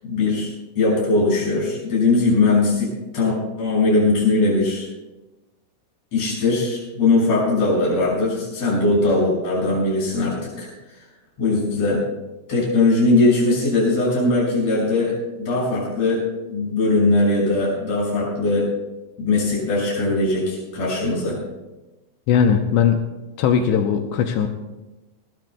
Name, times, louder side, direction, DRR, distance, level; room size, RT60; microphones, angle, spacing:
voice 1, 0.0-4.9 6.1-10.7 11.4-12.1 12.5-18.7 19.2-21.4, left 2 dB, 30° left, -6 dB, 7.4 m, -20 dB
voice 2, 22.3-23.0 23.4-24.5, left 7 dB, 80° left, 4 dB, 2.5 m, -18 dB
19.5 x 19.5 x 2.3 m, 1.1 s
omnidirectional pair, 5.9 m